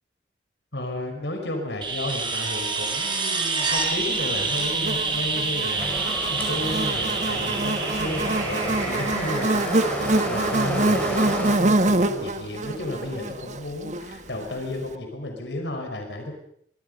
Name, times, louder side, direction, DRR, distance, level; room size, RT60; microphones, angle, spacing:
voice 1, 0.7-16.3, left 1 dB, 80° left, 3 dB, 5.3 m, -33 dB
sound 1, 1.8-10.5 12.8-12.9, right 4 dB, 25° right, 4.6 m, -28 dB
Buzz, 4.1-14.5, right 2 dB, 45° right, 1.5 m, -26 dB
sound 2, 5.8-11.6, equal, 10° left, 4.8 m, -31 dB
25.0 x 23.0 x 5.5 m, 0.65 s
head